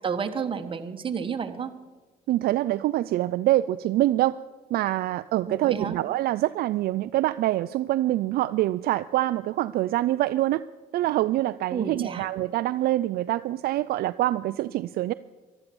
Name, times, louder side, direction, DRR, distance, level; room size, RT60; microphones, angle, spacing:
voice 1, 0.0-1.7 5.5-6.0 11.7-12.3, right 6 dB, 30° right, 6 dB, 1.3 m, -31 dB
voice 2, 2.3-4.4 4.7-10.6 10.9-15.1, right 15 dB, 65° right, 13 dB, 0.4 m, -25 dB
14.0 x 12.0 x 7.0 m, 1.3 s
cardioid pair, 110°, 17 cm